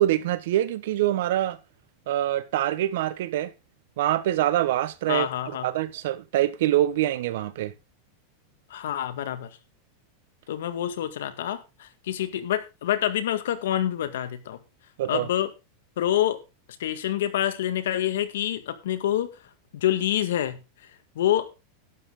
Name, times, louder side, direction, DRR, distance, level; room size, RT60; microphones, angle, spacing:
voice 1, 0.0-1.6 2.1-3.5 4.0-5.3 5.6-7.7 15.0-15.3, right 13 dB, 70° right, 1.3 m, -24 dB
voice 2, 5.1-5.7 8.7-9.5 10.5-14.6 15.1-15.5 16.0-16.4 16.8-19.3 19.7-20.6 21.2-21.5, left 11 dB, 85° left, 1.9 m, -27 dB
12.0 x 9.9 x 3.8 m
supercardioid pair, 160°, 0 cm